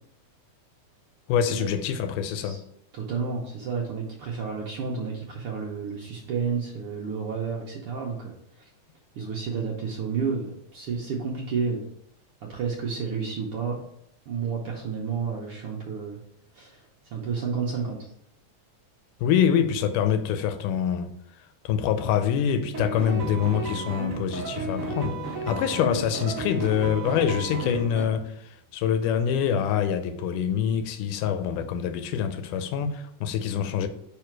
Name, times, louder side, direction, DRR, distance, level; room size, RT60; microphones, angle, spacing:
voice 1, 1.3-2.6 19.2-21.1 21.7-25.2 25.5-33.9, left 8 dB, 85° left, 2.2 m, -25 dB
voice 2, 2.9-8.7 9.1-11.9 12.4-13.8 14.3-16.2 16.5-16.8 17.1-18.1, right 5 dB, 75° right, 1.3 m, -31 dB
sound 1, 22.7-28.0, right 2 dB, 35° right, 1.4 m, -32 dB
5.1 x 4.9 x 4.5 m
omnidirectional pair, 3.6 m